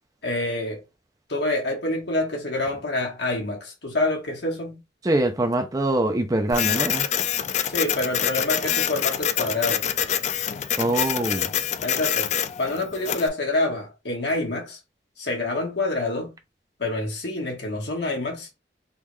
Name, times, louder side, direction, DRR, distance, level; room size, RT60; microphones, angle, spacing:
voice 1, 0.2-0.8 1.3-4.8 7.6-9.8 11.8-14.8 15.2-16.4 16.8-18.5, left 2 dB, 70° left, 1.4 m, -27 dB
voice 2, 5.0-7.0 10.8-11.5, right 1 dB, 20° right, 0.5 m, -23 dB
Printer, 6.5-13.3, left 9 dB, 40° left, 0.3 m, -26 dB
3.6 x 2.5 x 3.1 m
head